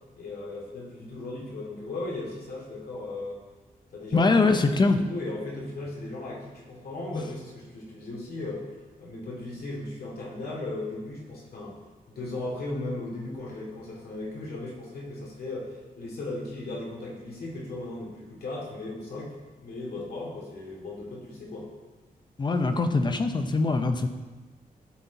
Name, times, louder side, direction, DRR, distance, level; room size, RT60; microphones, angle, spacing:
voice 1, 0.2-3.4 3.9-8.7 9.0-11.8 12.1-19.3 19.6-21.7, left 2 dB, 80° left, -4 dB, 2.3 m, -36 dB
voice 2, 4.1-5.0 7.1-7.2 22.4-24.1, left 3 dB, 30° left, 7 dB, 0.6 m, -23 dB
12.0 x 4.2 x 4.0 m, 1.3 s
wide cardioid pair, 165°, 16 cm